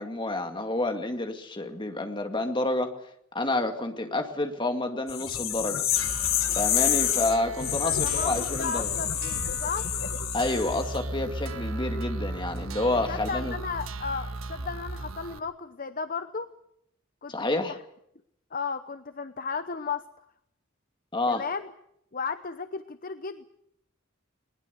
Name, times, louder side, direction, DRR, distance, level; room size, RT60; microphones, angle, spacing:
voice 1, 0.0-2.9 3.3-5.9 6.6-8.9 10.3-13.5 17.3-17.8 21.1-21.4, left 2 dB, 25° left, 6 dB, 2.2 m, -29 dB
sound 1, 5.1-10.9, left 11 dB, 75° left, 1.6 m, -28 dB
sound 2, 6.0-15.4, right 2 dB, 80° right, 1.5 m, -36 dB
voice 2, 7.8-9.9 12.9-16.5 17.2-17.8 18.5-20.1 21.3-21.7 22.1-23.4, left 5 dB, 45° left, 11 dB, 0.8 m, -34 dB
21.0 x 20.5 x 8.3 m, 0.74 s
head